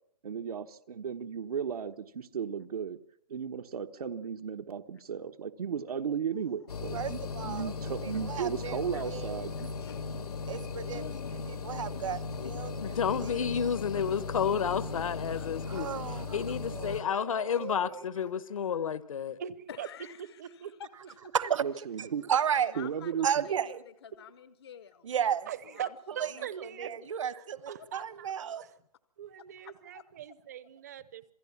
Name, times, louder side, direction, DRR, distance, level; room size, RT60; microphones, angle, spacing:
voice 1, 0.2-3.0 3.3-9.7 21.6-22.3 22.8-23.5, right 7 dB, 80° right, 1.3 m, -35 dB
sound 1, 6.7-17.0, left 4 dB, 85° left, 2.0 m, -37 dB
voice 2, 6.9-7.7 8.0-8.8 9.1-9.6 10.5-11.0 11.5-13.6 15.7-18.0 21.3-22.7 23.2-23.8 25.0-25.5 26.6-28.6, right 8 dB, 55° right, 1.3 m, -34 dB
voice 3, 10.9-11.3 15.3-15.6 17.5-17.6 19.7-20.3 21.1-21.2 21.4-21.5 22.5-23.7 24.0-25.1 25.6-25.9 26.4-26.5 29.6-30.0, left 8 dB, 45° left, 0.8 m, -48 dB
voice 4, 12.8-15.9 16.3-19.4, left 7 dB, 60° left, 1.1 m, -31 dB
voice 5, 19.4-19.9 20.2-20.7 21.0-21.3 25.5-26.9 27.3-28.3 28.6-28.7 29.2-31.3, right 10 dB, 30° right, 0.8 m, -42 dB
27.5 x 18.0 x 7.2 m
hypercardioid pair, 175°, 19 cm